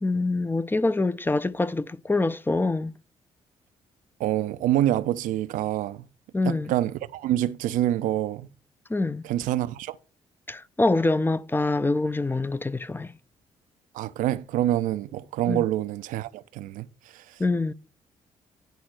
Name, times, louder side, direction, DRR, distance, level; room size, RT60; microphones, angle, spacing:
voice 1, 0.0-2.9 6.3-6.7 8.9-9.2 10.5-13.1 15.5-15.6 17.4-17.7, left 2 dB, 15° left, 0.6 m, -25 dB
voice 2, 4.2-6.1 6.4-8.5 9.2-10.0 13.9-16.9 17.1-17.2, right 13 dB, 65° right, 0.6 m, -26 dB
10.5 x 4.3 x 6.2 m
hypercardioid pair, 50°, 14 cm